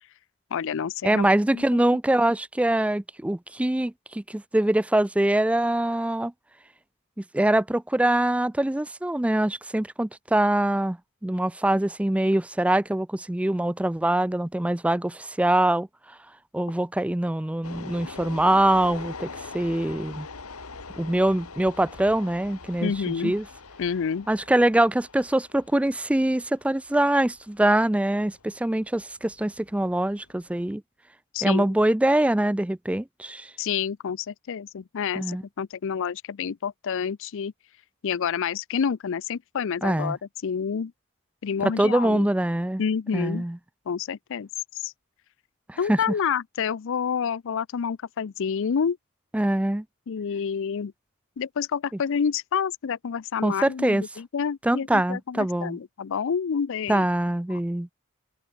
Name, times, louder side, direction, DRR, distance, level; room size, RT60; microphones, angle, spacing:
voice 1, 0.5-1.3 1.5-1.8 22.8-23.3 23.8-24.3 31.3-31.7 33.6-37.5 38.0-40.9 41.4-42.3 42.8-43.5 43.9-44.5 44.8-44.9 45.8-49.0 50.1-50.9 51.4-57.1 57.5-57.6, left 6 dB, 60° left, 0.4 m, -28 dB
voice 2, 1.0-6.3 7.2-16.2 16.5-20.3 21.0-23.5 24.3-30.8 31.4-33.5 35.1-35.4 39.8-40.2 41.6-42.8 43.1-43.6 45.7-46.0 49.3-49.8 53.4-54.0 54.6-55.8 56.9-57.9, right 1 dB, 5° right, 0.3 m, -24 dB
sound 1, 17.6-30.7, left 4 dB, 75° left, 2.3 m, -43 dB
open air
head